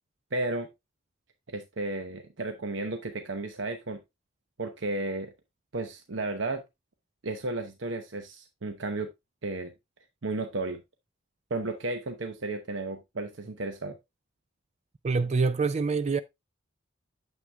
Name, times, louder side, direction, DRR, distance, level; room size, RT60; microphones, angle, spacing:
voice 1, 0.3-0.7 1.5-4.0 4.6-5.3 5.7-6.6 7.2-9.1 9.4-9.7 10.2-10.8 11.5-14.0, right 2 dB, 65° right, 0.8 m, -33 dB
voice 2, 15.0-16.2, right 4 dB, 35° right, 0.3 m, -25 dB
9.0 x 7.3 x 2.3 m
head